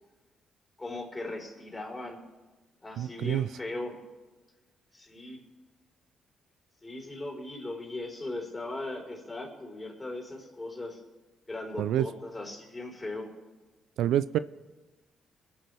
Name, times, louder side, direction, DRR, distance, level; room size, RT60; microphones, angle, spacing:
voice 1, 0.8-2.2 2.8-4.0 4.9-5.4 6.8-11.0 11.5-13.3, left 2 dB, 25° left, 1 dB, 4.1 m, -38 dB
voice 2, 3.0-3.5 11.8-12.1 14.0-14.4, right 11 dB, 75° right, 16 dB, 0.3 m, -27 dB
22.5 x 10.5 x 3.4 m, 1.2 s
supercardioid pair, 55°, 0 cm